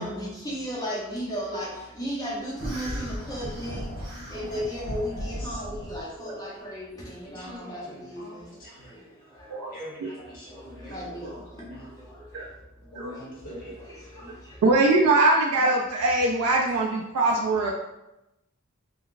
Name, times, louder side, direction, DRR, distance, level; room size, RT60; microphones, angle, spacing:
voice 1, 0.0-3.9 4.3-8.5 9.4-9.7 10.9-11.6 12.0-12.1 12.3-12.4 13.1-14.3 14.8-14.9, equal, 15° left, -6 dB, 0.8 m, -35 dB
sound 1, 2.6-6.0, equal, 55° right, 0.9 m, -35 dB
voice 2, 4.1-4.8 5.1-5.6 7.2-8.9 9.7-11.9 12.9-13.7 15.5-15.6, equal, 40° left, -6 dB, 1.1 m, -44 dB
voice 3, 14.6-17.7, right 2 dB, 90° right, 0 dB, 0.4 m, -22 dB
3.8 x 2.3 x 2.4 m, 0.92 s
head